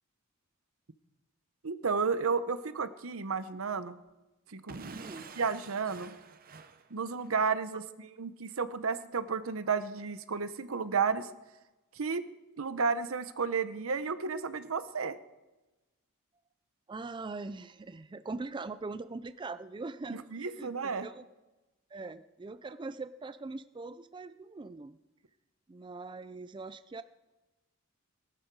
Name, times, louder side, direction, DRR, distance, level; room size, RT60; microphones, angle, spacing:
voice 1, 1.6-4.0 4.5-5.0 5.4-6.2 6.9-7.8 8.2-11.3 12.0-12.2 12.6-15.2 20.1-21.1, right 5 dB, 75° right, 13 dB, 0.8 m, -32 dB
Explosion / Shatter, 4.7-7.5, right 4 dB, 45° right, 0.8 m, -48 dB
voice 2, 4.9-5.4 16.9-21.2 21.9-25.0 25.7-27.0, right 3 dB, 20° right, 13 dB, 0.4 m, -42 dB
18.5 x 11.5 x 4.7 m, 1.1 s
head